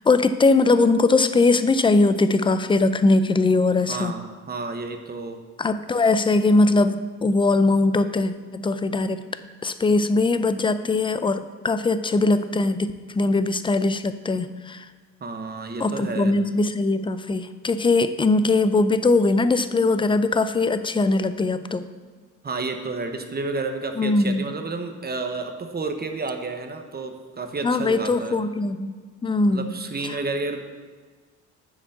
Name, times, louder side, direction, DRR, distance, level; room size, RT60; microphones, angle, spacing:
voice 1, 0.1-4.1 5.6-9.2 9.6-14.9 15.8-21.8 24.0-24.5 27.6-29.7 30.0-30.2, left 3 dB, 15° left, 11 dB, 0.4 m, -21 dB
voice 2, 3.9-5.4 15.2-16.3 22.4-28.4 29.5-30.6, right 3 dB, 30° right, 6 dB, 1.0 m, -31 dB
7.1 x 5.1 x 6.7 m, 1.5 s
cardioid pair, 90°, 30 cm